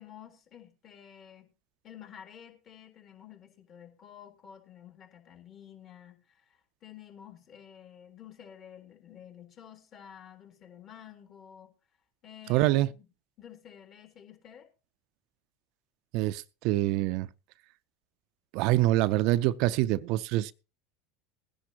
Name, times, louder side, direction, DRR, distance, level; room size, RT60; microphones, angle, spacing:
voice 1, 0.0-1.5 1.8-11.7 12.2-13.1 13.4-14.7, left 9 dB, 45° left, 3.6 m, -51 dB
voice 2, 12.5-12.9 16.1-17.3 18.5-20.5, right 16 dB, 60° right, 0.5 m, -25 dB
20.5 x 10.5 x 2.9 m
hypercardioid pair, 85°, 0 cm